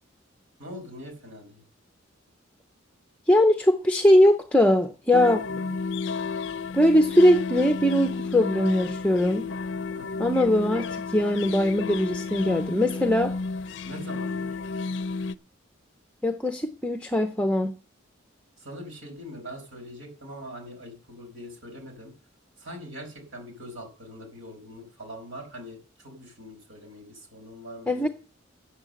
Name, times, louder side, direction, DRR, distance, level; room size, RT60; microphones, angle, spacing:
voice 1, 0.6-1.6 5.6-5.7 10.0-10.3 13.8-14.5 18.6-22.1 22.6-28.1, equal, 75° right, 5.1 m, -42 dB
voice 2, 3.3-5.5 6.7-9.5 10.2-13.3 16.2-17.7 27.9-28.1, left 1 dB, 5° left, 0.6 m, -21 dB
sound 1, 5.1-15.4, left 4 dB, 60° left, 0.5 m, -32 dB
10.0 x 7.7 x 7.8 m
head